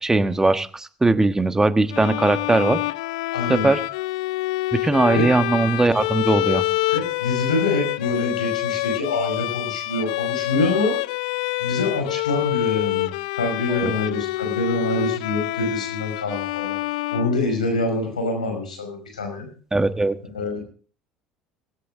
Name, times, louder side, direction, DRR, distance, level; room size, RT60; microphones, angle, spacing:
voice 1, 0.0-2.8 3.5-3.8 4.7-6.6 13.7-13.9 19.7-20.2, right 2 dB, 15° right, 10 dB, 1.3 m, -20 dB
Bowed string instrument, 1.9-18.0, left 19 dB, 70° left, 0.6 m, -27 dB
voice 2, 3.3-3.7 5.1-5.3 6.9-11.0 11.6-13.1 13.3-16.8 17.1-19.5 20.3-20.6, left 2 dB, 90° left, 4 dB, 5.5 m, -25 dB
17.0 x 16.5 x 3.7 m, 0.41 s
hypercardioid pair, 65°, 4 cm